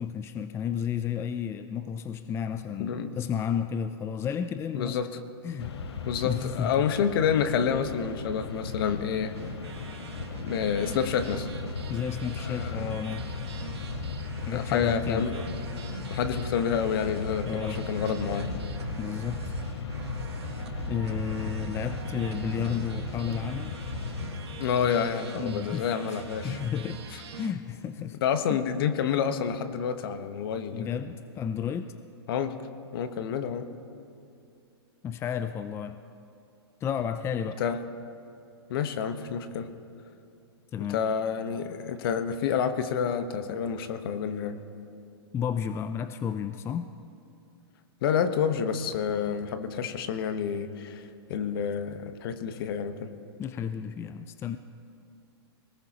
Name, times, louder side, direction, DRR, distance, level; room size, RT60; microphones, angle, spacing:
voice 1, 0.0-5.0 5.4-5.7 6.2-6.7 11.9-13.3 14.5-15.3 17.4-17.8 19.0-19.4 20.9-23.8 25.3-27.0 27.4-28.2 28.5-28.6 30.7-31.9 35.0-36.0 36.8-37.6 40.7-41.0 45.3-46.9 53.4-54.6, left 8 dB, 20° left, 10 dB, 0.4 m, -32 dB
voice 2, 2.8-3.2 4.7-5.1 6.0-9.3 10.4-11.5 12.4-12.9 14.5-15.4 16.1-18.5 24.6-26.6 28.2-30.9 32.3-32.5 32.9-33.7 37.6-37.8 38.7-39.7 40.8-44.5 48.0-53.1, left 7 dB, 60° left, 9 dB, 1.2 m, -28 dB
Mechanisms, 5.6-25.0, left 5 dB, 75° left, 1.3 m, -37 dB
sound 1, 9.3-27.5, right 4 dB, 80° right, 1.7 m, -41 dB
22.5 x 19.0 x 3.0 m, 2.5 s
hypercardioid pair, 120°, 14 cm